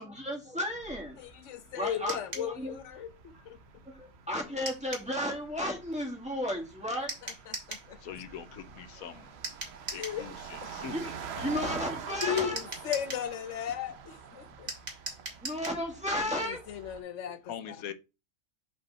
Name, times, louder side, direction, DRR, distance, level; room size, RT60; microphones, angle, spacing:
voice 1, 0.0-1.2 1.8-2.7 3.3-3.4 3.9-7.1 9.0-9.1 10.9-12.6 15.4-16.6, left 1 dB, 5° right, 2.0 m, -34 dB
sound 1, 0.7-17.0, right 7 dB, 55° right, 0.9 m, -46 dB
voice 2, 1.2-3.1 3.5-3.6 7.2-8.0 9.9-10.8 12.2-14.7 16.3-17.8, left 9 dB, 60° left, 1.0 m, -36 dB
sound 2, 2.1-2.5 4.7-5.1 7.1-7.9 9.4-10.2 12.2-13.3 14.7-15.8, right 2 dB, 30° right, 2.1 m, -39 dB
voice 3, 8.0-9.2 9.9-11.0 11.4-11.5 12.1-12.5 17.5-17.9, left 8 dB, 85° left, 1.3 m, -43 dB
5.3 x 5.3 x 4.2 m
omnidirectional pair, 1.5 m